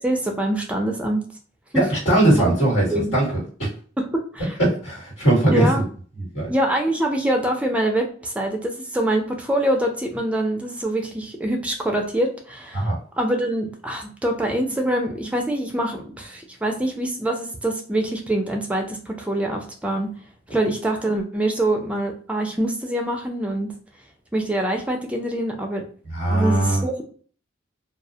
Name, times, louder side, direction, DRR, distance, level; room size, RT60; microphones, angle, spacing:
voice 1, 0.0-1.2 1.7-1.8 2.4-2.5 2.9-3.1 4.0-4.5 5.5-5.8 6.5-12.9 13.2-20.1 20.5-23.7 24.3-25.9 26.3-27.0, right 1 dB, 5° right, 2 dB, 0.3 m, -24 dB
voice 2, 1.7-3.7 4.6-5.8 6.3-6.5 12.7-13.0 26.1-26.8, right 1 dB, 90° left, -3 dB, 1.5 m, -20 dB
2.3 x 2.1 x 2.6 m, 0.43 s
head